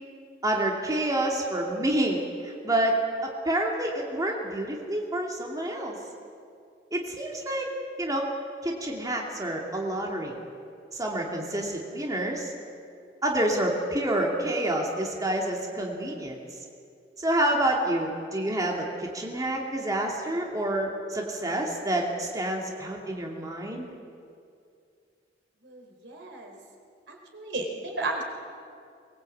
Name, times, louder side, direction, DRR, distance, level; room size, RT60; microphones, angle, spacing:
voice 1, 0.4-6.0 6.9-7.7 8.0-8.3 8.6-10.4 10.9-12.5 13.2-16.4 17.2-23.9, right 1 dB, 20° right, -1 dB, 2.6 m, -28 dB
voice 2, 25.6-26.5 27.1-28.2, right 2 dB, 70° right, 2 dB, 4.2 m, -34 dB
22.5 x 21.5 x 8.6 m, 2.4 s
head